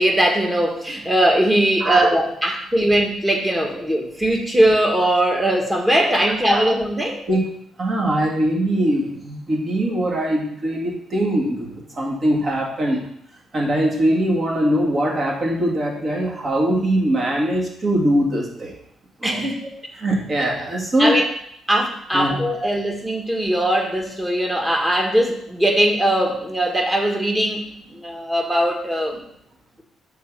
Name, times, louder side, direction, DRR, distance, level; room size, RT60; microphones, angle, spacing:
voice 1, 0.0-7.2 19.2-19.6 21.0-21.2 21.7-29.2, right 1 dB, 10° right, 2 dB, 1.4 m, -20 dB
voice 2, 7.8-13.0 13.5-18.7 19.2-19.4 20.0-21.2 22.1-22.7, right 1 dB, 40° right, -2 dB, 2.1 m, -21 dB
6.0 x 3.9 x 6.2 m, 0.69 s
cardioid pair, 90°, 0 cm